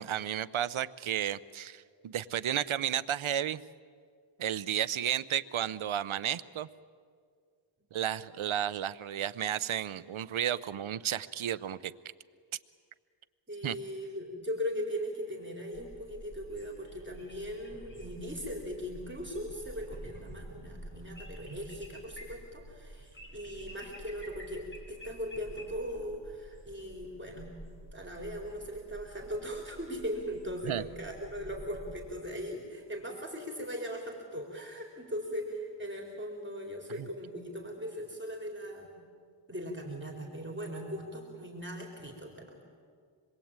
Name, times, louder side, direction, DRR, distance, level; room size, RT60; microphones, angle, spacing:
voice 1, 0.0-3.6 4.4-6.7 7.9-11.9 13.6-13.8 30.6-30.8 37.0-37.1, right 10 dB, 85° right, 16 dB, 0.8 m, -32 dB
voice 2, 13.5-27.6 27.9-39.0 39.5-42.6, equal, 25° right, 0 dB, 4.1 m, -39 dB
sound 1, 15.7-32.0, right 1 dB, 25° left, 7.3 m, -49 dB
27.0 x 21.5 x 8.9 m, 2.1 s
wide cardioid pair, 70°, 47 cm